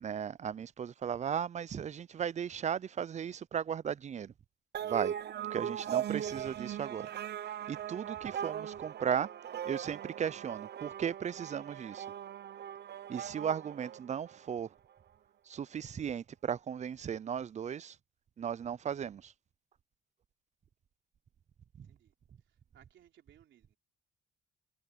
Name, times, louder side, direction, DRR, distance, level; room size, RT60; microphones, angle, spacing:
voice 1, 0.0-4.3 4.8-5.1 5.5-7.1 7.7-9.3 9.6-12.1 13.1-14.7 15.5-18.0 18.4-19.3 21.8-21.9, right 8 dB, 35° right, 0.5 m, -36 dB
sound 1, 4.7-14.5, right 10 dB, 55° right, 0.9 m, -39 dB
voice 2, 21.8-22.1 22.4-23.8, right 10 dB, 75° right, 3.5 m, -64 dB
cardioid pair, 90°, 20 cm